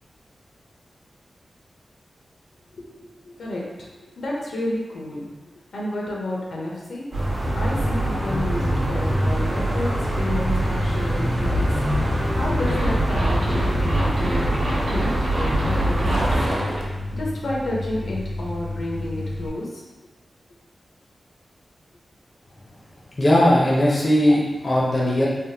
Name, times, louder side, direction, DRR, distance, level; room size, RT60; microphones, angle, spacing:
voice 1, 2.7-5.3 5.7-7.1 7.6-9.9 10.2-11.7 12.3-16.4 17.1-19.8, left 1 dB, 85° left, -3 dB, 0.6 m, -31 dB
sound 1, 7.1-16.4, right 1 dB, 65° right, 1.0 m, -23 dB
Zipper (clothing), 12.7-16.8, right 1 dB, 90° right, 0.8 m, -29 dB
Truck, 13.5-19.5, left 1 dB, 35° right, 0.5 m, -33 dB
voice 2, 23.2-25.3, left 1 dB, 40° left, -4 dB, 0.5 m, -18 dB
3.3 x 2.0 x 2.8 m, 1.1 s
wide cardioid pair, 125°, 0 cm